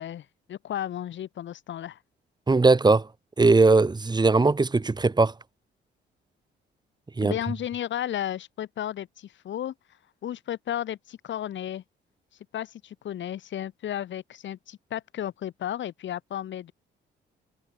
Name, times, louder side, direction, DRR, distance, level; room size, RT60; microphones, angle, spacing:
voice 1, 0.0-2.0 7.2-9.7 10.2-11.8 12.5-16.7, left 11 dB, 70° left, 3.3 m, -33 dB
voice 2, 2.5-3.1 3.4-5.3 7.2-7.3, right 3 dB, 20° right, 2.1 m, -19 dB
cardioid pair, 90°, 20 cm